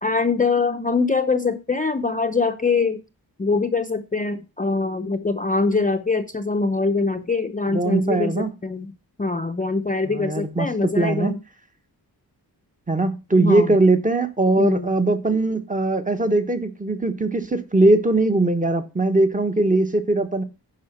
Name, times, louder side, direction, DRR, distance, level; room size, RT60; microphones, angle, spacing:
voice 1, 0.0-3.0 3.4-8.9 9.2-11.4 13.4-13.7 14.6-14.9, left 3 dB, 20° left, 0.7 m, -23 dB
voice 2, 7.7-8.5 10.0-11.4 12.9-20.4, right 2 dB, 20° right, 1.1 m, -20 dB
10.5 x 5.2 x 5.8 m
wide cardioid pair, 140°, 39 cm